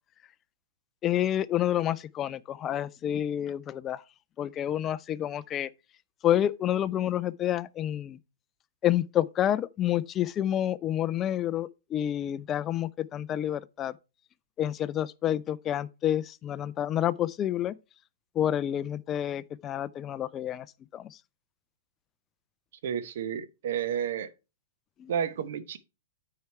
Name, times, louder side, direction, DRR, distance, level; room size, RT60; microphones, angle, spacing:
voice 1, 1.0-4.0 4.4-5.7 6.2-8.2 8.8-13.9 14.6-17.7 18.4-20.7 20.9-21.2 25.0-25.1, left 11 dB, 25° left, 0.3 m, -29 dB
voice 2, 22.8-24.3 25.1-25.8, right 8 dB, 60° right, 0.9 m, -31 dB
9.4 x 4.7 x 4.4 m
hypercardioid pair, 120°, 0 cm